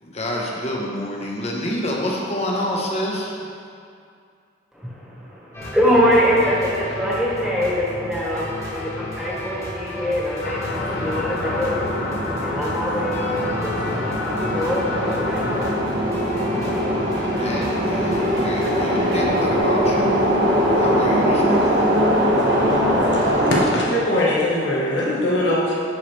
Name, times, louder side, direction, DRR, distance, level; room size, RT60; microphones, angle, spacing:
voice 1, 0.0-3.5 17.4-21.9, left 1 dB, 40° left, -2 dB, 1.0 m, -28 dB
voice 2, 4.7-11.9 12.4-13.3 13.6-13.8 14.2-15.7, equal, 5° right, -6 dB, 1.4 m, -23 dB
sound 1, 5.5-19.6, left 1 dB, 20° left, 1.5 m, -33 dB
sound 2, 10.4-15.8, left 3 dB, 65° left, 0.5 m, -30 dB
sound 3, 10.7-23.6, equal, 85° right, 1.4 m, -21 dB
voice 3, 23.1-25.7, left 1 dB, 85° left, -5 dB, 1.3 m, -22 dB
10.5 x 4.6 x 3.3 m, 2.4 s
head